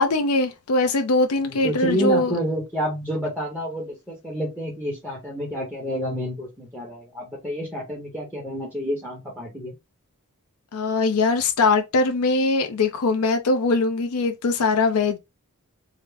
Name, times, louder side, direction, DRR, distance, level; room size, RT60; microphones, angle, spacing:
voice 1, 0.0-2.4 10.7-15.2, left 3 dB, 85° left, 0.6 m, -21 dB
voice 2, 1.5-9.7, equal, 5° right, 1.0 m, -29 dB
3.7 x 2.1 x 3.4 m
head